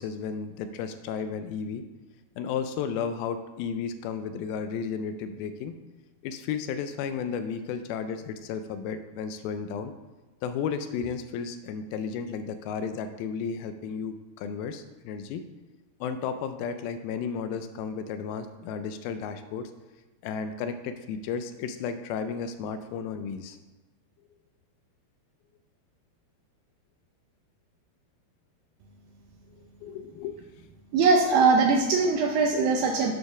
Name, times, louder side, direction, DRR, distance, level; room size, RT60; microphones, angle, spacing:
voice 1, 0.0-1.8 2.4-5.7 6.2-9.9 10.4-15.4 16.0-19.7 20.2-23.6 29.8-30.4, left 6 dB, 80° left, 9 dB, 2.2 m, -33 dB
voice 2, 30.9-33.1, right 4 dB, 80° right, 2 dB, 2.2 m, -21 dB
9.4 x 4.6 x 5.8 m, 1.1 s
omnidirectional pair, 4.6 m